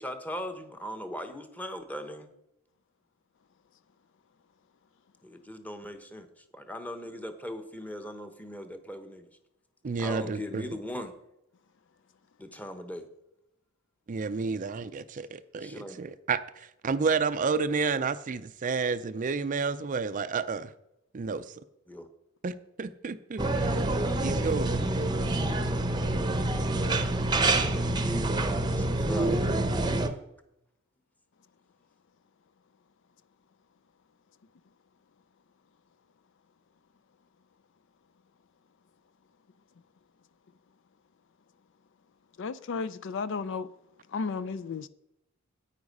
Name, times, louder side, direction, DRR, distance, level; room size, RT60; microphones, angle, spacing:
voice 1, 0.0-2.3 5.2-9.3 10.0-11.1 12.4-13.1 15.6-16.0 21.9-22.1 24.9-25.1 27.9-29.7, equal, 5° left, 1.0 m, -40 dB
voice 2, 9.8-10.7 14.1-20.7 21.1-21.5 22.4-23.7 24.2-24.8, right 4 dB, 40° right, 0.4 m, -30 dB
sound 1, 23.4-30.1, right 2 dB, 20° right, 0.8 m, -27 dB
voice 3, 42.4-43.7 44.1-44.9, left 4 dB, 60° left, 0.4 m, -33 dB
9.6 x 8.8 x 5.3 m
head